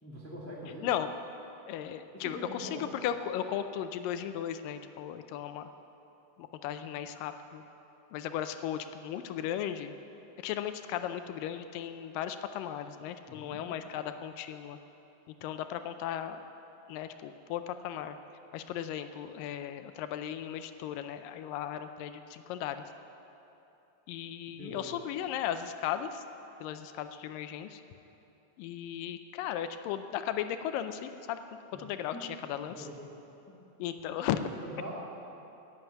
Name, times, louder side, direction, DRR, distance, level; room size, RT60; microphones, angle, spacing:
voice 1, 0.0-0.9 2.1-3.0 13.3-13.6 24.6-24.9 31.7-31.8 32.1-32.2 32.7-32.9 34.1-34.9, equal, 15° left, -4 dB, 0.5 m, -43 dB
voice 2, 1.7-5.7 6.4-7.6 8.1-9.9 10.4-14.8 15.3-16.4 16.9-18.2 18.5-22.8 24.1-26.2 26.6-27.8 28.6-31.4 31.7-32.9 33.8-34.4, left 10 dB, 80° left, 9 dB, 2.2 m, -36 dB
11.0 x 9.3 x 9.0 m, 3.0 s
omnidirectional pair, 4.1 m